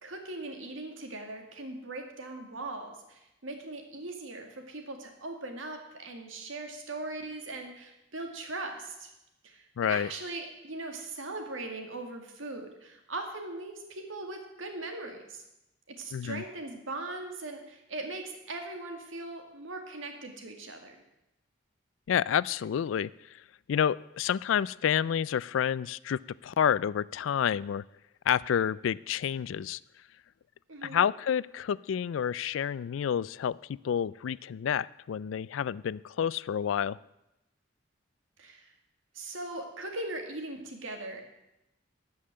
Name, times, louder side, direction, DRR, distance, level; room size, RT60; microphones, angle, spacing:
voice 1, 0.0-9.1 9.4-15.4 16.0-21.0 30.7-31.0 38.4-38.7 39.1-41.2, right 2 dB, 90° right, 4 dB, 2.1 m, -40 dB
voice 2, 9.8-10.1 16.1-16.4 22.1-23.1 23.7-27.8 28.3-29.8 30.8-33.6 33.8-37.0, left 8 dB, 80° left, 21 dB, 0.3 m, -29 dB
13.0 x 5.6 x 8.9 m, 0.90 s
head